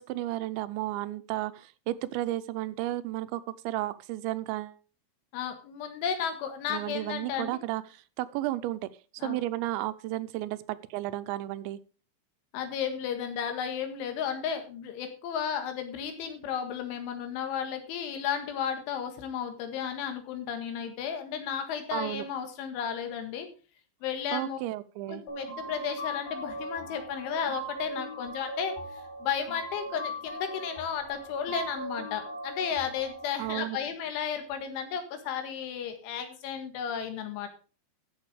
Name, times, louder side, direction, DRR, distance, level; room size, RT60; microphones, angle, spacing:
voice 1, 0.0-4.8 6.7-8.8 9.2-11.8 21.9-22.3 24.3-25.2 33.4-33.8, right 16 dB, 85° right, 13 dB, 2.9 m, -33 dB
voice 2, 5.3-7.6 9.2-9.4 12.5-23.5 24.0-24.6 25.1-28.7 29.2-37.5, left 8 dB, 85° left, 7 dB, 4.2 m, -33 dB
sound 1, 25.3-33.3, right 1 dB, 65° left, 5.1 m, -39 dB
13.5 x 6.9 x 4.8 m, 0.36 s
omnidirectional pair, 5.3 m